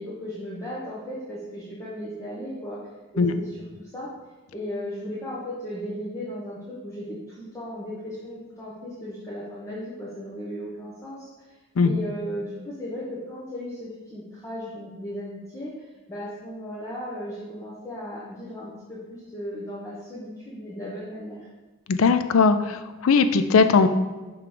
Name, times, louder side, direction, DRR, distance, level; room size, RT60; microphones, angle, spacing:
voice 1, 0.0-2.8 3.1-4.1 4.5-11.5 11.8-21.5, equal, 15° left, -8 dB, 1.0 m, -36 dB
voice 2, 21.9-23.9, left 4 dB, 85° left, 10 dB, 0.4 m, -19 dB
6.7 x 3.1 x 5.0 m, 1.2 s
head